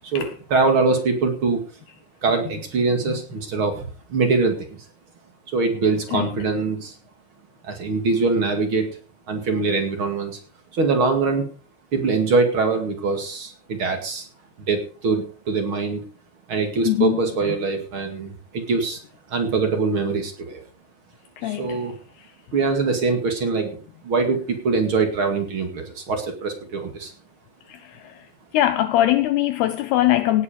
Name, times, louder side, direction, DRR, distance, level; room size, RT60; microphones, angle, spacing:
voice 1, 0.0-1.6 2.2-4.9 5.5-7.0 7.6-9.0 9.3-10.4 10.7-11.5 11.9-14.3 14.7-16.0 16.5-19.0 19.3-20.6 21.4-22.0 22.5-23.8 24.0-27.1, right 4 dB, 40° right, 1.9 m, -23 dB
voice 2, 16.9-17.2 21.4-21.8 27.7-28.3 28.5-30.4, left 14 dB, 85° left, 2.3 m, -21 dB
18.0 x 8.5 x 5.2 m
omnidirectional pair, 5.6 m